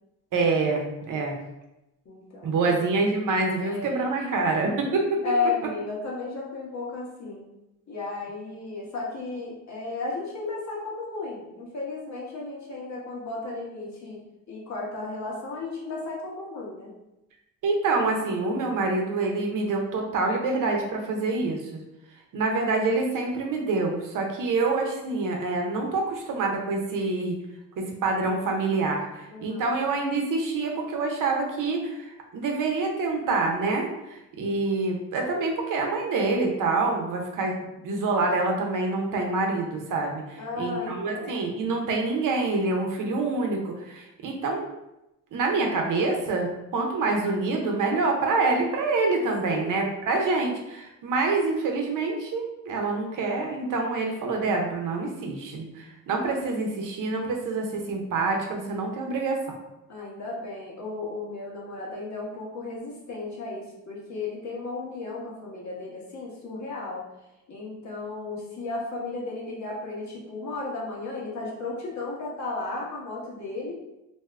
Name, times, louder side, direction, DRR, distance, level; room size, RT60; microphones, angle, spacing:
voice 1, 0.3-1.4 2.4-5.2 17.6-21.8 22.3-27.4 27.8-37.6 37.8-44.7 45.3-59.4, right 3 dB, 65° right, 1 dB, 0.7 m, -26 dB
voice 2, 2.0-2.9 3.6-4.3 4.7-4.8 5.2-7.5 7.9-14.2 14.5-16.9 29.3-29.7 40.4-41.4 49.4-49.8 59.9-67.0 67.5-73.8, left 3 dB, 55° left, -4 dB, 1.2 m, -34 dB
2.7 x 2.3 x 3.3 m, 0.91 s
supercardioid pair, 70°, 35 cm